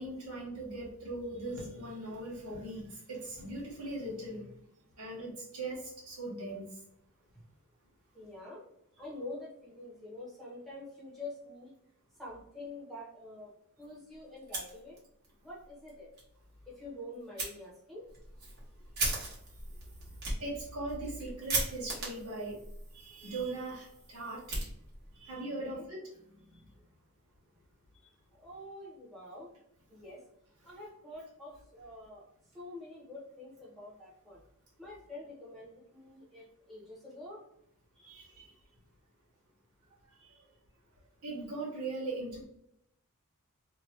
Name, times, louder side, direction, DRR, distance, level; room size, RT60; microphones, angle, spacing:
voice 1, 0.0-4.4 5.0-6.7 20.4-22.6 22.9-24.6 25.2-26.0 38.0-38.5 41.2-42.5, right 2 dB, 85° right, -4 dB, 1.4 m, -39 dB
voice 2, 8.1-8.6 9.0-11.7 12.2-13.5 13.8-15.0 15.4-16.1 16.7-18.0 24.2-24.3 25.6-25.8 26.5-26.6 28.0-29.5 29.9-30.2 30.6-32.3 32.5-34.4 34.8-37.4 37.9-38.2, left 2 dB, ahead, -6 dB, 0.9 m, -47 dB
Fire, 14.4-15.3 15.6-15.7 16.1-16.2 17.4-17.5 18.1-25.2, right 2 dB, 45° right, 1.2 m, -38 dB
2.9 x 2.3 x 3.1 m, 0.76 s
head